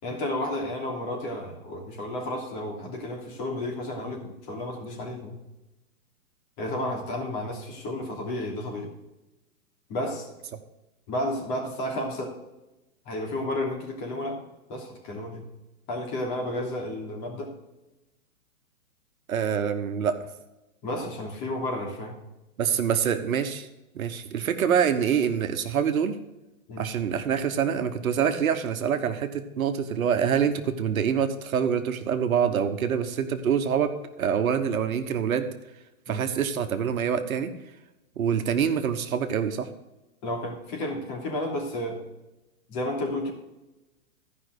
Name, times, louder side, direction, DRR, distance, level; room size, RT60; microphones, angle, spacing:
voice 1, 0.0-5.4 6.6-8.9 9.9-10.3 11.1-12.4 13.0-14.4 14.7-15.4 15.9-17.6 20.8-22.1 26.7-26.9 36.1-36.2 40.2-42.0 42.7-43.3, left 1 dB, 35° left, 0 dB, 3.0 m, -32 dB
voice 2, 19.3-20.2 22.6-23.7 23.9-26.2 26.8-35.5 36.1-37.5 38.2-39.7, right 7 dB, 70° right, 8 dB, 1.3 m, -25 dB
13.5 x 5.5 x 6.4 m, 1.0 s
hypercardioid pair, 135°, 43 cm